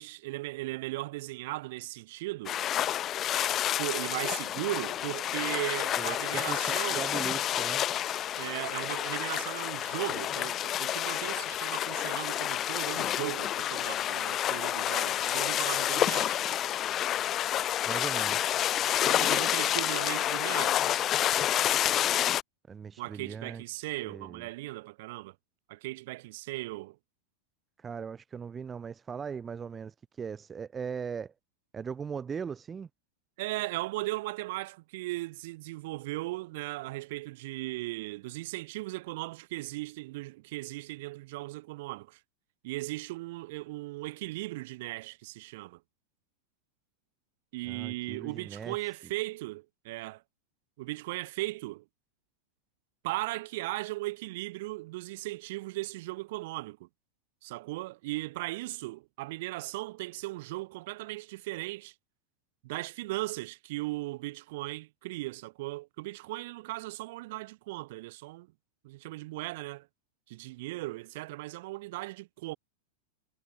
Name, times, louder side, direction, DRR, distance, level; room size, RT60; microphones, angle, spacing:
voice 1, 0.0-2.6 3.8-7.1 8.4-16.4 19.1-20.9 23.0-25.3 25.7-27.0 33.4-42.2 42.6-45.8 47.5-50.2 50.8-51.8 53.0-56.9 57.4-61.9 62.6-68.5 68.8-69.9 70.3-72.6, right 20 dB, 50° right, 7.6 m, -37 dB
sound 1, 2.5-22.4, left 11 dB, 30° left, 1.8 m, -29 dB
voice 2, 6.0-7.8 17.8-18.5 22.7-23.6 24.0-24.5 27.8-31.3 31.7-32.9 47.6-48.8, right 6 dB, 20° right, 4.5 m, -39 dB
figure-of-eight pair, 90°, 0 cm